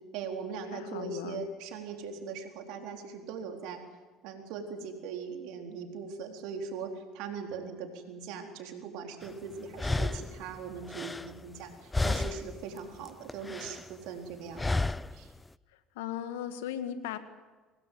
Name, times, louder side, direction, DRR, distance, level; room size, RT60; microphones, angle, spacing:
voice 1, 0.1-3.8 4.2-14.7 15.1-15.3, right 5 dB, 70° right, 3 dB, 4.2 m, -40 dB
voice 2, 0.7-1.5 16.0-17.2, left 10 dB, 80° left, 9 dB, 2.0 m, -37 dB
sound 1, 9.2-9.3 9.8-11.7 11.9-12.6 12.9-13.9 14.6-15.2, left 2 dB, 15° left, 0.7 m, -32 dB
25.5 x 19.5 x 9.4 m, 1.3 s
hypercardioid pair, 65°, 0 cm